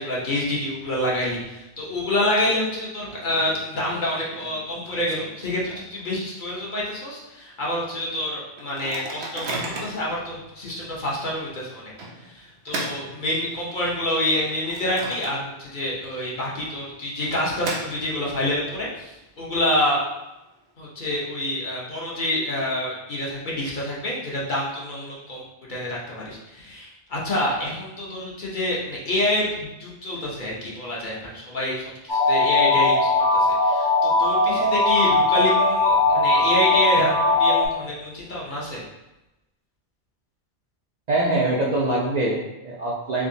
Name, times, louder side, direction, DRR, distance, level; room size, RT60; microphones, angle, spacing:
voice 1, 0.0-11.9 12.3-20.0 20.8-25.4 25.7-33.1 33.3-38.8, left 1 dB, 50° left, -5 dB, 0.8 m, -27 dB
Microwave oven, 1.8-2.3 2.6-2.7 3.0-6.1 6.6-6.7 6.9-7.2 7.7-7.8 8.6-10.1 10.7-10.9 12.0-13.8 14.3-15.8 16.0-16.1 17.0-18.4, right 2 dB, 75° right, 0.9 m, -36 dB
sound 1, 32.1-37.7, left 3 dB, 20° left, 0.7 m, -19 dB
voice 2, 41.1-43.3, right 2 dB, 50° right, -5 dB, 0.5 m, -23 dB
3.6 x 2.9 x 2.6 m, 0.97 s
omnidirectional pair, 1.2 m